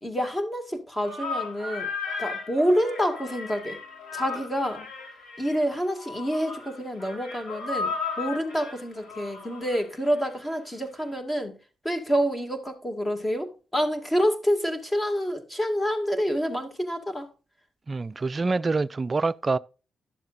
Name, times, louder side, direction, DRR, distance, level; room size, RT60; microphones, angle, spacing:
voice 1, 0.0-1.9 2.2-3.8 4.1-4.9 5.4-11.6 11.8-17.3, equal, 20° left, 2.1 m, -27 dB
sound 1, 1.0-10.5, left 4 dB, 60° left, 3.7 m, -35 dB
voice 2, 17.9-19.6, right 3 dB, 35° right, 0.4 m, -26 dB
11.5 x 7.2 x 2.6 m
cardioid pair, 85°, 0 cm